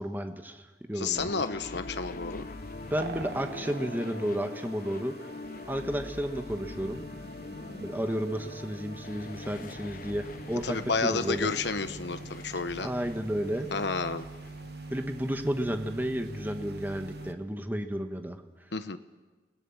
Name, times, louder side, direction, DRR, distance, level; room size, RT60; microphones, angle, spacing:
voice 1, 0.0-1.3 2.9-5.2 5.7-7.1 7.8-11.5 12.8-13.7 14.9-18.4, equal, 10° right, 6 dB, 1.2 m, -32 dB
voice 2, 0.9-2.5 10.6-12.9 13.7-14.3 18.7-19.0, left 4 dB, 65° left, 11 dB, 1.1 m, -31 dB
sound 1, 1.1-17.6, left 3 dB, 50° left, 0.6 m, -44 dB
sound 2, 1.8-17.3, right 3 dB, 60° right, 1.2 m, -45 dB
29.0 x 17.0 x 7.2 m, 1.3 s
head